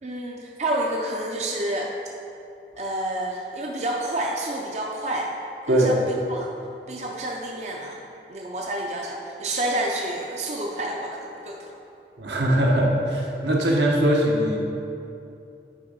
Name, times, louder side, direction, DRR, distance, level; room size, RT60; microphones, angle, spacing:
voice 1, 0.0-1.9 2.8-5.3 5.6-6.5 6.9-8.0 8.3-11.7, right 1 dB, 40° right, 0 dB, 0.5 m, -29 dB
voice 2, 12.2-14.6, right 1 dB, 80° right, -1 dB, 1.1 m, -21 dB
9.5 x 3.6 x 5.4 m, 2.7 s
head